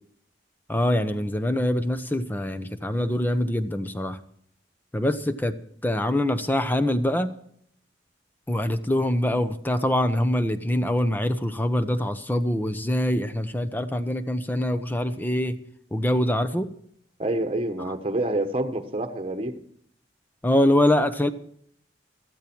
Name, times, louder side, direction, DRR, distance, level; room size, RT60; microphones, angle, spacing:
voice 1, 0.7-4.2 4.9-5.6 5.8-7.3 8.5-15.6 15.9-16.7 20.4-21.3, left 1 dB, 10° left, 11 dB, 0.9 m, -24 dB
voice 2, 17.2-19.6, right 1 dB, 30° right, 7 dB, 1.3 m, -27 dB
16.0 x 14.0 x 4.5 m, 0.64 s
head